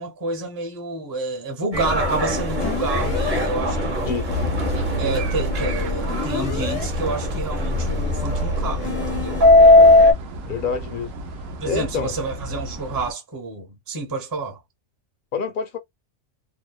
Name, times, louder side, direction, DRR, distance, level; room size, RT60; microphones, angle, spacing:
voice 1, 0.0-4.2 5.0-9.4 11.6-14.6, right 3 dB, 20° right, 0.6 m, -29 dB
Subway metro underground, 1.7-10.1, left 2 dB, 40° right, 1.0 m, -19 dB
sound 1, 2.6-3.5 4.3-6.9 7.7-9.4, left 3 dB, 85° left, 1.0 m, -29 dB
sound 2, 3.5-13.1, right 2 dB, 80° right, 1.0 m, -34 dB
voice 2, 4.1-4.4 10.4-11.1 11.6-12.1 15.3-15.8, left 5 dB, 60° left, 0.5 m, -27 dB
2.7 x 2.0 x 2.3 m
omnidirectional pair, 1.3 m